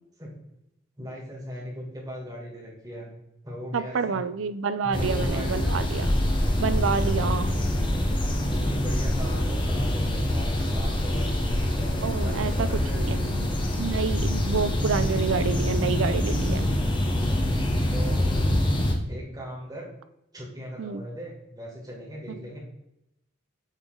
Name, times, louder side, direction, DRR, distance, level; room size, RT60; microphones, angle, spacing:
voice 1, 1.0-3.1 3.4-4.3 4.8-5.6 5.9-6.2 7.2-7.7 8.5-13.2 17.9-18.6 19.0-19.9 20.3-22.6, equal, 20° right, -4 dB, 2.2 m, -39 dB
voice 2, 3.7-6.1 6.6-7.5 12.0-13.5 13.8-16.7 20.8-21.0 22.3-22.4, right 5 dB, 80° right, 13 dB, 0.4 m, -28 dB
sound 1, 4.9-18.9, left 1 dB, 25° left, 0.9 m, -25 dB
8.2 x 3.7 x 3.8 m, 0.83 s
head